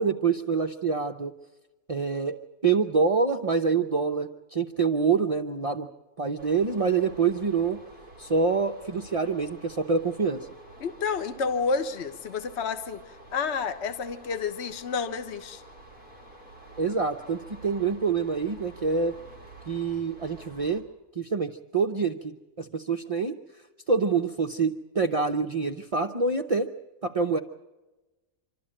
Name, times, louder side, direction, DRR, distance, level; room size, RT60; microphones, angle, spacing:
voice 1, 0.0-1.3 1.9-2.4 2.6-5.9 6.2-7.8 8.2-10.5 16.8-19.1 19.7-20.8 21.2-23.4 23.9-26.7 27.0-27.4, right 5 dB, 35° right, 4 dB, 0.5 m, -26 dB
sound 1, 6.4-20.8, right 2 dB, 75° left, 4.2 m, -49 dB
voice 2, 10.8-15.6, left 5 dB, 50° left, 8 dB, 1.3 m, -30 dB
26.5 x 13.0 x 8.8 m, 1.1 s
omnidirectional pair, 1.6 m